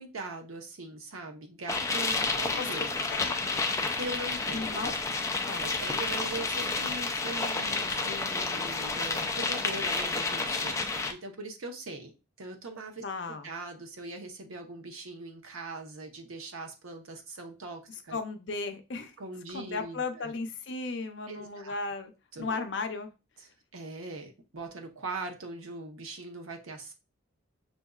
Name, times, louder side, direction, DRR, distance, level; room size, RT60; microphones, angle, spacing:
voice 1, 0.0-2.9 4.0-4.8 5.4-12.1 12.4-18.2 19.2-20.3 21.3-21.8 22.3-22.7 23.7-26.9, right 2 dB, 90° right, 3 dB, 0.8 m, -41 dB
sound 1, 1.7-11.1, left 3 dB, 15° left, 0.3 m, -30 dB
voice 2, 3.1-3.4 4.5-5.0 5.5-5.7 10.6-10.7 13.0-13.5 18.1-19.1 19.5-22.1 22.4-23.1, left 3 dB, 60° left, 6 dB, 0.6 m, -35 dB
6.2 x 2.6 x 2.3 m, 0.30 s
head